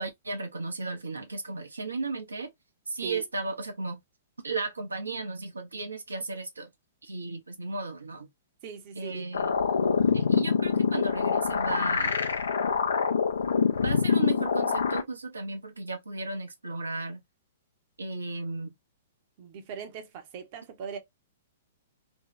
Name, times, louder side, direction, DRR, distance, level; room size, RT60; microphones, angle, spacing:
voice 1, 0.0-2.5 2.9-4.0 4.4-6.7 7.0-8.3 8.9-9.6 10.1-12.2 13.8-17.2 18.0-18.7, right 3 dB, 80° right, 0.6 m, -35 dB
voice 2, 8.6-9.2 19.4-21.0, right 7 dB, 40° right, 0.7 m, -40 dB
sound 1, 9.3-15.0, left 6 dB, 70° left, 0.4 m, -25 dB
2.6 x 2.2 x 3.0 m
figure-of-eight pair, 110°, 0 cm